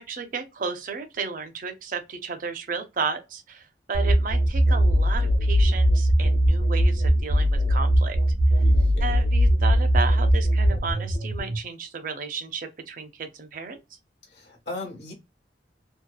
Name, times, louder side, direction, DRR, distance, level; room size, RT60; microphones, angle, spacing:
voice 1, 0.0-8.2 9.0-13.8, right 5 dB, 45° right, 0.4 m, -33 dB
sound 1, 3.9-11.6, equal, 90° right, 0.9 m, -20 dB
voice 2, 8.6-9.2 14.3-15.1, left 2 dB, 75° left, 1.1 m, -38 dB
2.7 x 2.2 x 2.2 m
head